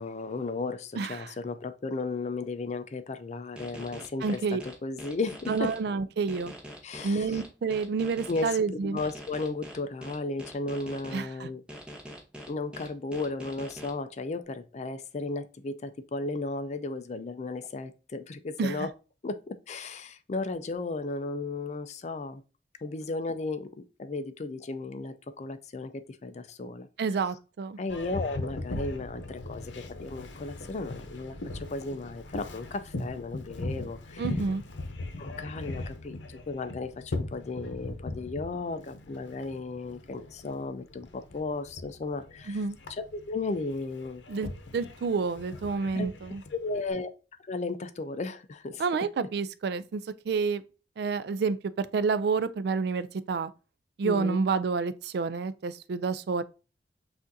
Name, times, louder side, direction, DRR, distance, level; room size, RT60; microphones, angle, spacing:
voice 1, 0.0-5.7 6.8-7.4 8.3-11.6 12.5-18.9 19.2-22.4 22.8-26.9 27.8-34.3 35.2-42.6 42.9-44.2 45.9-46.1 46.5-47.1 47.5-48.8 54.0-54.4, left 3 dB, 40° left, 0.4 m, -35 dB
voice 2, 1.0-1.3 4.2-4.6 5.5-6.5 7.0-9.0 11.1-11.5 18.6-18.9 27.0-27.8 34.2-34.6 42.5-42.8 44.3-46.4 48.8-50.6 51.0-53.5 54.0-56.4, right 4 dB, 60° right, 0.3 m, -29 dB
sound 1, 3.6-5.8 6.3-8.5 9.0-11.2 11.7-13.9, equal, 5° right, 1.0 m, -43 dB
Boat Water vehicle, 27.9-46.9, left 2 dB, 85° left, 0.7 m, -40 dB
6.0 x 2.6 x 2.6 m
head